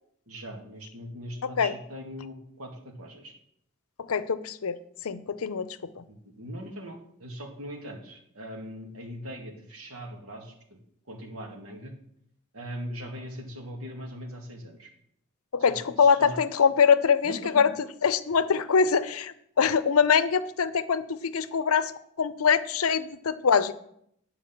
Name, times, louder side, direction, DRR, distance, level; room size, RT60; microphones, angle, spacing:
voice 1, 0.3-3.3 6.1-10.8 11.1-11.9 12.5-14.9 15.6-16.4 17.2-17.7, equal, 80° right, 2 dB, 2.2 m, -40 dB
voice 2, 4.0-4.8 5.0-6.0 15.5-17.7 18.0-21.9 22.2-23.7, left 6 dB, 80° left, 14 dB, 0.6 m, -23 dB
9.3 x 5.1 x 7.2 m, 0.71 s
head